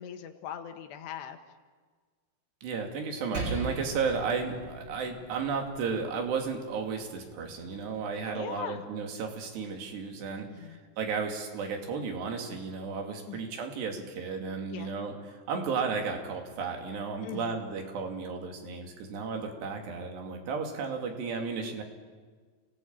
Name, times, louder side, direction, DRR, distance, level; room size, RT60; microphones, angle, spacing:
voice 1, 0.0-1.4 8.3-8.8 10.5-10.8 13.3-13.5 14.7-14.9 17.2-17.6, left 9 dB, 80° left, 8 dB, 3.5 m, -40 dB
voice 2, 2.6-21.8, right 5 dB, 75° right, 3 dB, 4.7 m, -34 dB
Percussion, 3.3-8.1, right 2 dB, 35° right, 4.0 m, -40 dB
29.0 x 18.5 x 8.9 m, 1.5 s
omnidirectional pair, 4.9 m